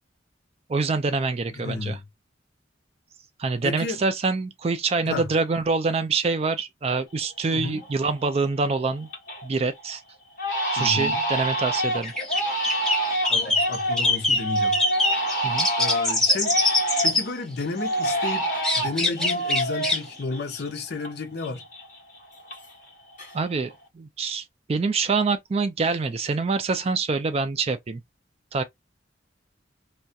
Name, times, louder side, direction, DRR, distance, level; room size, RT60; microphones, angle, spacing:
voice 1, 0.7-2.0 3.4-9.1 9.4-10.0 10.6-12.1 15.4-15.7 23.3-28.0 28.5-28.6, right 4 dB, 35° right, 0.3 m, -25 dB
voice 2, 1.5-2.0 3.6-4.0 5.0-5.2 7.5-7.8 10.8-11.2 13.3-14.8 15.8-16.5 17.0-18.5 18.8-21.6, left 3 dB, 60° left, 0.6 m, -32 dB
Crying sobbing, 7.2-7.3 7.8-8.2 8.6-9.5 9.8-9.9 10.4-17.3 17.8-21.1 21.4-22.9 23.2-23.7, right 1 dB, 45° left, 1.0 m, -27 dB
sound 1, 12.0-17.2 18.6-20.0, left 2 dB, 5° left, 0.8 m, -23 dB
2.3 x 2.1 x 2.6 m
head